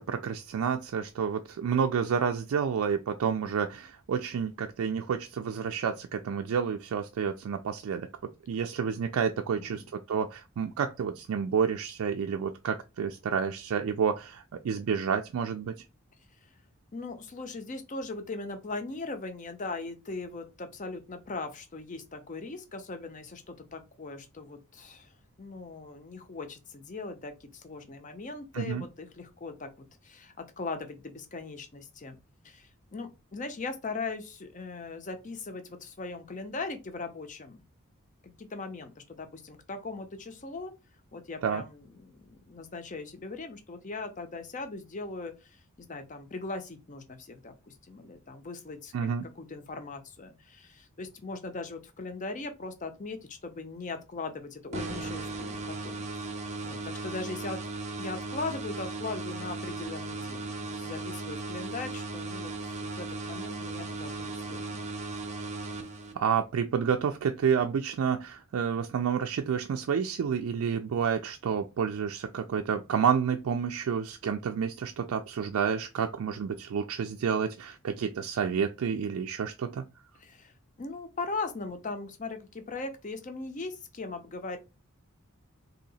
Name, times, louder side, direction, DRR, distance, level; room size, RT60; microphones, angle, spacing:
voice 1, 0.0-8.1 8.5-15.7 28.5-28.9 41.4-41.6 48.9-49.3 66.2-79.8, right 7 dB, 80° right, 0.3 m, -29 dB
voice 2, 9.6-9.9 16.9-25.1 25.4-29.7 30.0-32.2 32.4-37.6 38.4-40.7 41.1-56.3 56.6-57.6 58.0-64.9 80.2-80.5 80.8-84.6, left 3 dB, 35° left, 0.6 m, -39 dB
sound 1, 54.7-66.4, right 3 dB, 30° right, 0.6 m, -37 dB
2.8 x 2.8 x 4.0 m
head